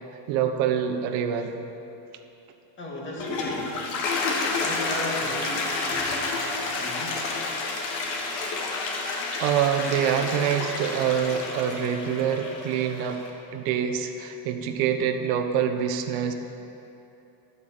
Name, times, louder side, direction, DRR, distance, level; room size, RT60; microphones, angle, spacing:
voice 1, 0.3-1.5 9.4-13.2 13.5-16.3, right 8 dB, 80° right, 5 dB, 1.2 m, -25 dB
voice 2, 2.8-3.8 4.6-7.3, left 1 dB, 25° left, -2 dB, 2.1 m, -36 dB
Toilet flush, 3.0-13.3, left 3 dB, 55° left, 2.0 m, -30 dB
12.0 x 8.2 x 7.9 m, 2.8 s
cardioid pair, 160°, 48 cm